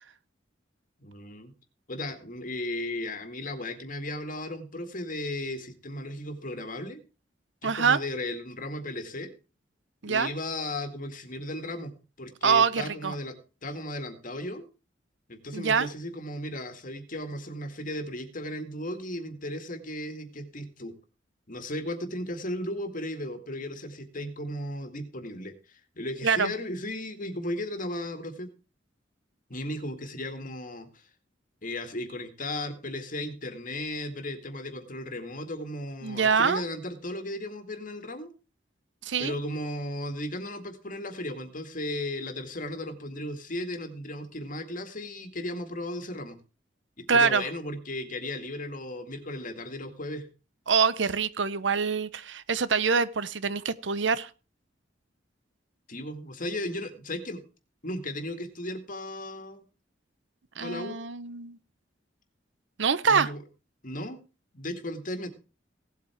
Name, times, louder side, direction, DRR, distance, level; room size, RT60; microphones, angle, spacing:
voice 1, 1.0-1.5 1.9-7.0 7.6-9.3 10.1-11.9 12.2-13.4 13.6-14.6 15.3-20.9 21.5-28.5 29.5-30.9 31.6-38.3 39.2-46.4 47.0-50.3 55.9-57.4 57.8-59.6 60.6-61.0 63.1-63.4 63.8-64.2 64.5-65.3, left 1 dB, 45° left, 8 dB, 2.0 m, -35 dB
voice 2, 7.6-8.0 10.0-10.3 12.4-13.1 15.5-15.9 26.2-26.5 36.0-36.6 39.0-39.3 47.1-47.4 50.7-54.3 60.6-61.6 62.8-63.3, right 5 dB, 80° right, 16 dB, 0.9 m, -25 dB
17.5 x 8.3 x 4.5 m, 0.33 s
head